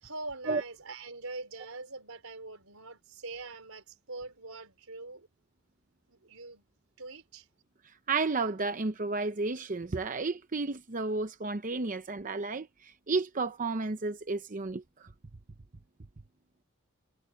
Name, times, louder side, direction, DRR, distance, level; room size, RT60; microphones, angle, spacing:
voice 1, 0.0-5.3 6.1-6.6 7.0-7.5, right 3 dB, 85° right, 4.2 m, -43 dB
voice 2, 8.1-15.1, right 3 dB, 40° right, 0.7 m, -32 dB
head